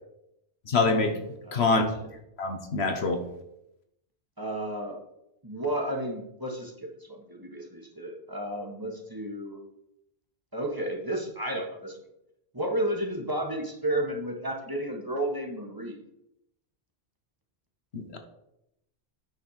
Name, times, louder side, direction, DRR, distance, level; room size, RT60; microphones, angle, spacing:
voice 1, 0.7-1.2 1.5-1.9 2.4-3.2 17.9-18.2, left 3 dB, 70° left, 5 dB, 1.4 m, -25 dB
voice 2, 1.4-1.8 4.4-5.0 5.4-9.6 10.5-12.0 12.5-16.0, right 1 dB, 20° right, 0 dB, 1.4 m, -32 dB
9.3 x 4.4 x 6.4 m, 0.83 s
omnidirectional pair, 1.1 m